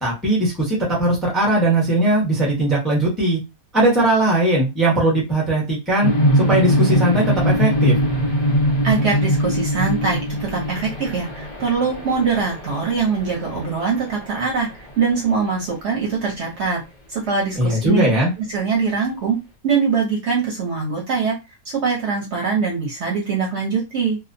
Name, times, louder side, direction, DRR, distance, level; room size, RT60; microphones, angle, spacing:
voice 1, 0.0-3.4 3.7-8.0 17.6-18.3, right 1 dB, ahead, -3 dB, 0.7 m, -19 dB
sound 1, 6.0-14.9, equal, 75° left, 0.3 m, -22 dB
voice 2, 8.8-16.8 17.1-18.1 18.4-19.4 19.6-21.3 21.7-24.2, right 5 dB, 55° right, -1 dB, 0.9 m, -22 dB
2.5 x 2.0 x 2.6 m, 0.24 s
omnidirectional pair, 1.5 m